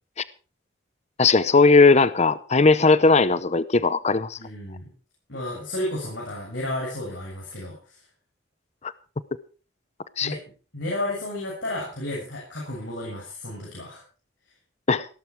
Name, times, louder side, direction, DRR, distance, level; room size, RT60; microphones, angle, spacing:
voice 1, 1.2-4.4 10.2-10.3 14.9-15.1, left 3 dB, 35° left, 0.7 m, -18 dB
voice 2, 4.4-4.9 5.3-8.0 10.2-10.4 10.7-14.0, left 1 dB, 75° left, 7.1 m, -32 dB
17.0 x 13.0 x 4.6 m
head